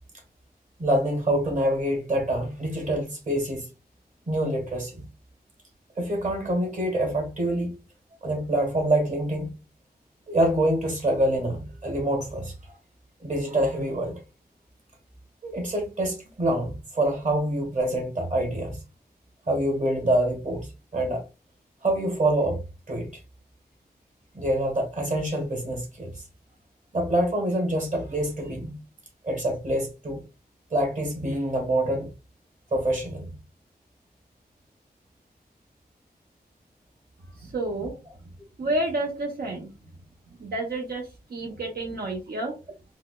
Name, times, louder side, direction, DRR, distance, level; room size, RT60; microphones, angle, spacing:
voice 1, 0.8-3.7 4.3-5.0 6.0-7.8 8.2-9.6 10.3-12.7 13.2-14.2 15.4-18.8 19.5-21.2 21.8-22.6 22.9-23.1 24.3-26.2 26.9-28.8 29.2-30.2 30.7-32.1 32.7-33.3, right 1 dB, 50° right, 1.5 m, -26 dB
voice 2, 37.4-37.9 38.6-39.7 40.4-42.5, right 2 dB, 75° right, 0.8 m, -30 dB
4.6 x 2.1 x 2.2 m
wide cardioid pair, 60°, 16 cm